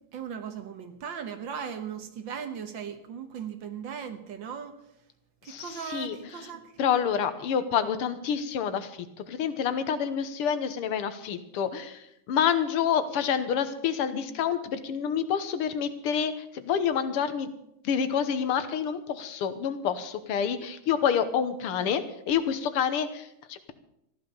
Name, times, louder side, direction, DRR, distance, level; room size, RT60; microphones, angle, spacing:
voice 1, 0.1-4.8 5.4-6.7, right 7 dB, 60° right, 8 dB, 1.9 m, -38 dB
voice 2, 5.5-6.5 6.8-17.5 17.8-23.7, left 8 dB, 85° left, 11 dB, 2.0 m, -28 dB
14.5 x 11.5 x 6.9 m, 0.79 s
omnidirectional pair, 2.4 m